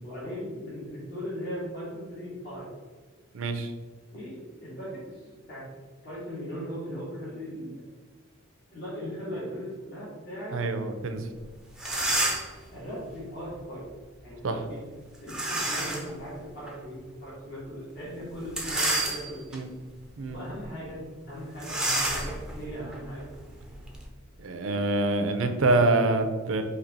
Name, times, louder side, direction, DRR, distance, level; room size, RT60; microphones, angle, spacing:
voice 1, 0.0-2.7 4.1-5.7 6.0-7.7 8.7-10.6 12.7-14.8 15.2-19.4 20.3-23.3, equal, 50° left, -9 dB, 1.4 m, -38 dB
voice 2, 3.3-3.7 10.5-11.3 14.4-14.6 19.5-19.7 20.2-20.4 24.4-26.6, right 2 dB, 70° right, 7 dB, 0.5 m, -25 dB
sound 1, 11.4-11.5 11.7-12.6 15.3-16.1 16.7-16.8 18.4-19.6 20.1-20.3 20.6-20.7 21.6-24.1, right 1 dB, 5° right, 0.5 m, -29 dB
4.4 x 2.8 x 3.9 m, 1.4 s
head